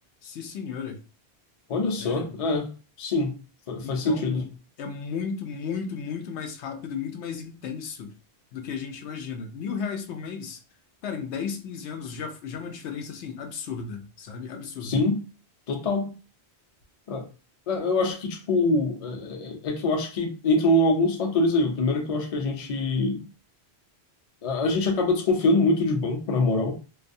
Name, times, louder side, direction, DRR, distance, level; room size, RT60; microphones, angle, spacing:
voice 1, 0.2-1.0 2.0-2.3 3.8-4.5 4.8-8.1 8.5-10.6 11.0-15.0, left 6 dB, 90° left, 0.9 m, -34 dB
voice 2, 1.7-2.7 3.0-3.3 3.7-4.4 14.8-15.2 15.7-16.1 17.1-17.3 17.7-23.2 24.4-26.7, left 2 dB, 45° left, 0.5 m, -24 dB
2.3 x 2.3 x 2.6 m
omnidirectional pair, 1.1 m